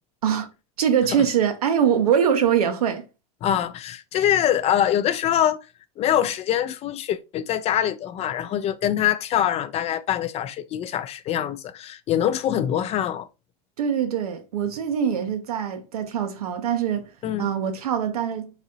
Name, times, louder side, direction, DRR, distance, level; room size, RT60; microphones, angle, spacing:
voice 1, 0.8-3.0 13.8-17.1 17.4-18.5, right 8 dB, 85° right, 0.9 m, -23 dB
voice 2, 3.4-5.6 6.0-13.3 17.2-17.5, left 10 dB, 35° left, 0.5 m, -24 dB
4.0 x 3.7 x 2.7 m
hypercardioid pair, 105°, 19 cm